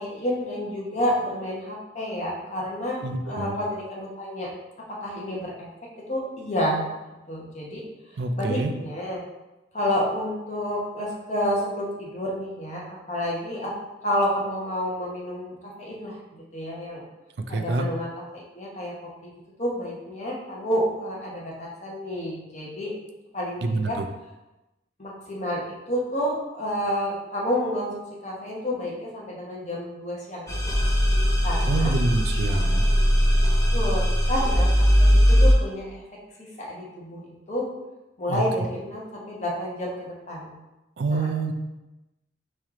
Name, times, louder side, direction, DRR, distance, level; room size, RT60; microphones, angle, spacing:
voice 1, 0.0-3.0 3.3-4.5 4.8-5.7 6.0-6.9 7.3-9.2 9.7-13.7 14.0-17.0 17.5-19.3 19.6-23.0 23.3-24.0 25.0-30.8 31.4-31.9 32.5-32.8 33.7-37.7 38.2-40.5 41.1-41.3, equal, 40° left, -3 dB, 1.0 m, -30 dB
voice 2, 3.0-3.6 8.2-8.7 17.5-17.9 23.6-24.1 31.7-32.9 38.3-38.4 41.0-41.5, right 3 dB, 70° right, 6 dB, 0.4 m, -26 dB
sound 1, 30.5-35.5, equal, 15° left, 0.5 m, -20 dB
4.2 x 3.2 x 3.6 m, 1.0 s
head